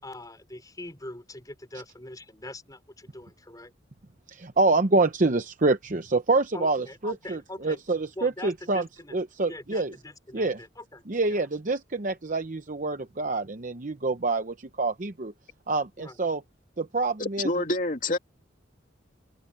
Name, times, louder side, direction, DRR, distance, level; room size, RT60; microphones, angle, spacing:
voice 1, 0.0-3.7 6.5-7.8 8.2-9.2 9.5-11.4 16.0-16.2, left 1 dB, 20° left, 4.1 m, -42 dB
voice 2, 4.3-8.8 9.1-9.9 10.3-10.6 11.1-15.3 15.7-16.4 16.8-17.5, right 3 dB, 40° right, 0.8 m, -26 dB
voice 3, 17.2-18.2, left 2 dB, 45° left, 2.8 m, -27 dB
head